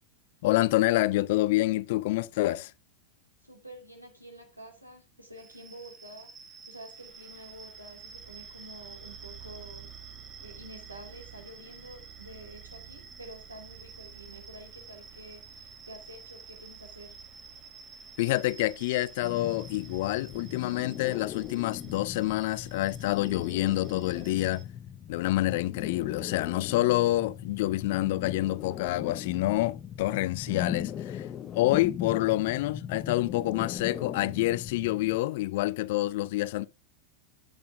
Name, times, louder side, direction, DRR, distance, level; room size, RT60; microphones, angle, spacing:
voice 1, 0.4-2.7 18.2-24.6 25.1-31.3 31.5-36.7, left 17 dB, 50° left, 0.5 m, -27 dB
voice 2, 3.4-6.3 6.7-9.9 10.4-17.2, right 1 dB, 85° right, 2.6 m, -48 dB
sound 1, 5.4-24.7, right 6 dB, 25° right, 1.3 m, -49 dB
sound 2, 19.2-35.2, left 9 dB, 30° left, 0.9 m, -39 dB
8.6 x 7.9 x 3.5 m
figure-of-eight pair, 90°, 0 cm